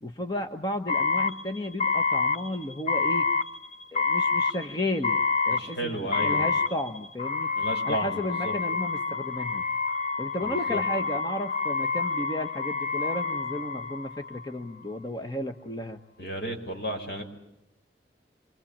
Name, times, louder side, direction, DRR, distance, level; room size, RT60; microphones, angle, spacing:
voice 1, 0.0-3.3 3.9-7.5 7.8-9.6 10.2-16.0, left 1 dB, 25° left, 5 dB, 1.2 m, -33 dB
sound 1, 0.9-14.5, left 4 dB, 40° left, 1.1 m, -28 dB
voice 2, 5.5-6.4 7.5-8.5 10.4-10.8 16.2-17.2, right 1 dB, 65° left, 2 dB, 6.5 m, -33 dB
27.0 x 25.0 x 8.8 m, 0.84 s
head